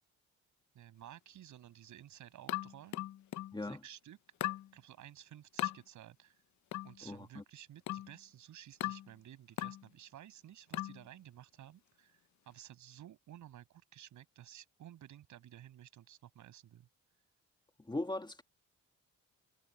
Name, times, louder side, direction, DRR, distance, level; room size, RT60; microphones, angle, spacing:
voice 1, 0.7-3.0 3.6-4.2 4.7-6.4 6.8-12.2 12.5-16.9, right 12 dB, 75° right, 7.5 m, -54 dB
sound 1, 2.5-3.6 4.4-4.7 5.6-5.8 6.7-7.0 7.9-8.2 8.8-9.1 9.6-9.9 10.7-11.0, left 14 dB, 70° left, 1.0 m, -38 dB
voice 2, 7.0-7.4 17.8-18.4, left 2 dB, 15° left, 2.0 m, -39 dB
cardioid pair, 90°, 30 cm